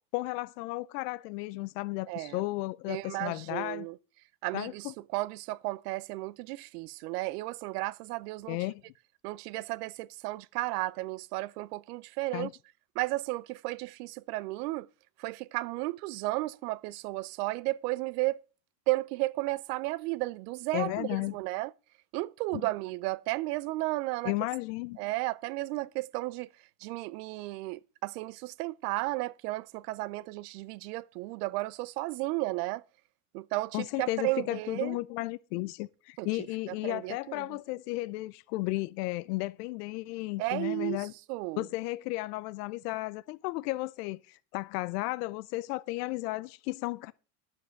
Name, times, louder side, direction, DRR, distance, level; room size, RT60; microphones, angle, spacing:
voice 1, 0.1-3.9 4.5-4.9 8.5-8.8 12.3-12.5 20.7-21.3 22.5-22.6 24.2-25.0 33.7-41.1 41.6-47.1, left 20 dB, 90° left, 0.7 m, -34 dB
voice 2, 2.1-2.4 2.9-4.0 4.4-8.6 9.2-12.5 13.0-14.9 15.2-18.4 18.9-21.7 22.1-24.3 25.0-26.5 26.8-32.8 33.3-35.0 36.2-36.3 36.7-37.6 40.4-41.6, right 20 dB, 85° right, 0.6 m, -34 dB
10.5 x 7.2 x 6.4 m
cardioid pair, 170°, 46 cm